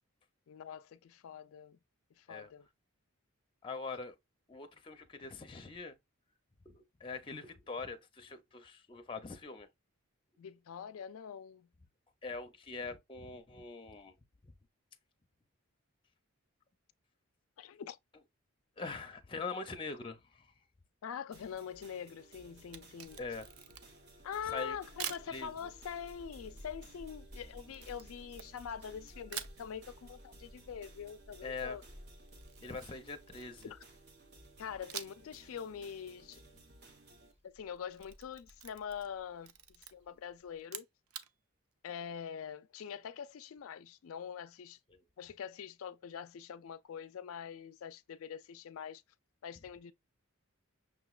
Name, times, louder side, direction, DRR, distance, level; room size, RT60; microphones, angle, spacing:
voice 1, 0.5-1.8 2.2-2.7 10.4-11.7 17.6-18.0 18.9-19.0 21.0-23.2 24.2-31.8 33.6-33.8 34.6-36.4 37.4-40.9 41.8-44.8 45.2-49.0 49.4-49.9, left 7 dB, 75° left, 0.4 m, -44 dB
voice 2, 3.6-4.1 4.5-6.0 6.7-9.7 12.2-14.1 18.8-20.5 23.2-23.5 24.4-24.8 25.3-25.5 31.4-31.8 32.6-33.7, left 4 dB, 25° left, 0.5 m, -43 dB
sound 1, 21.3-37.3, right 2 dB, 50° right, 0.9 m, -59 dB
Camera, 22.6-24.1 25.0-25.3 27.7-28.9 29.3-29.6 32.3-33.8 34.9-35.3 35.7-35.8 37.7-39.1 39.4-39.9 40.6-41.3, right 9 dB, 80° right, 0.5 m, -45 dB
sound 2, 23.0-40.6, equal, 30° right, 1.1 m, -58 dB
6.1 x 2.9 x 2.3 m
head